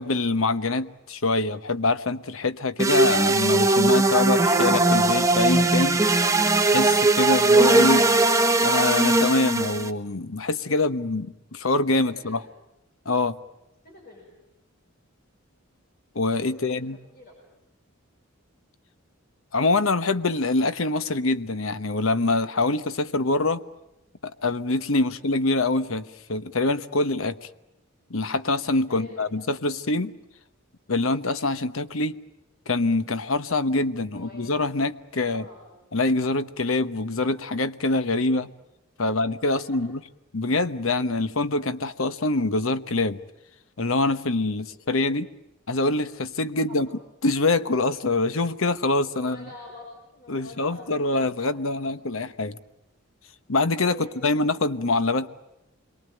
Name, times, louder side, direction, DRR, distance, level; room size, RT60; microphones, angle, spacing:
voice 1, 0.0-6.0 6.6-8.1 8.6-12.4 13.0-13.4 16.1-17.0 19.5-23.6 24.2-27.4 28.1-30.1 30.9-32.2 32.7-35.5 35.9-38.5 39.0-40.0 40.3-43.2 43.8-45.3 45.7-46.9 47.2-49.4 50.3-52.6 53.5-55.3, left 2 dB, 70° left, 1.1 m, -25 dB
sound 1, 2.8-9.9, right 2 dB, 15° right, 1.1 m, -19 dB
voice 2, 12.0-12.4 13.8-14.3 16.5-16.8 17.1-17.3 25.1-25.2 28.9-29.3 33.8-34.5 35.2-35.7 39.0-39.1 39.5-39.8 44.4-44.6 46.5-46.8 49.1-52.3 53.8-54.9, left 2 dB, 45° left, 6.8 m, -46 dB
28.0 x 23.0 x 9.1 m
head